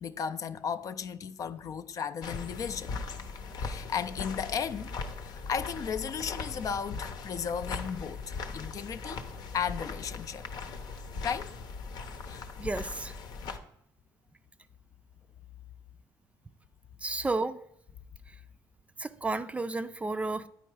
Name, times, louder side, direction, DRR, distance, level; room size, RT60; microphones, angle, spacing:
voice 1, 0.0-2.9 3.6-4.9 5.2-8.2 8.5-9.2 9.5-10.5 11.2-11.5 12.3-12.5, left 7 dB, 50° left, 0.4 m, -35 dB
sound 1, 2.2-13.6, left 4 dB, 70° left, 0.8 m, -39 dB
voice 2, 12.6-13.1 17.0-17.6 18.3-18.4 19.0-20.5, right 3 dB, 15° right, 0.4 m, -32 dB
9.7 x 4.6 x 4.7 m
cardioid pair, 85°, 7 cm